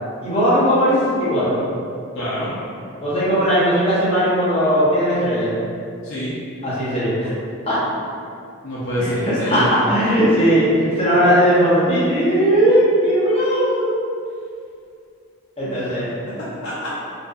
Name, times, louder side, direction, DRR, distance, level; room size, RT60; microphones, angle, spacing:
voice 1, 0.2-1.6 3.0-5.5 6.6-7.3 7.6-7.8 9.0-13.9 15.6-16.1, equal, 25° left, -10 dB, 0.7 m, -18 dB
voice 2, 2.1-2.5 6.0-6.3 8.6-9.7 15.6-15.9 16.4-17.0, equal, 60° left, -9 dB, 0.4 m, -26 dB
2.6 x 2.3 x 2.3 m, 2.4 s
head